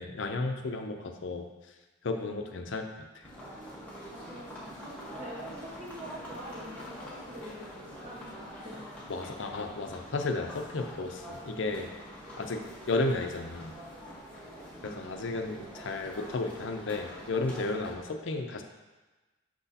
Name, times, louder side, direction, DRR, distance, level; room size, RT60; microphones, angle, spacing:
voice 1, 0.0-1.5 2.0-2.8 3.1-3.2 9.1-11.9 12.4-13.7 14.8-18.6, left 3 dB, 65° left, 5 dB, 0.6 m, -33 dB
sound 1, 3.2-17.9, equal, 5° left, 1.3 m, -45 dB
voice 2, 4.1-4.5 4.8-8.2 8.6-8.9 14.8-15.1, equal, 30° right, -6 dB, 1.2 m, -45 dB
6.1 x 6.0 x 2.8 m, 1.2 s
head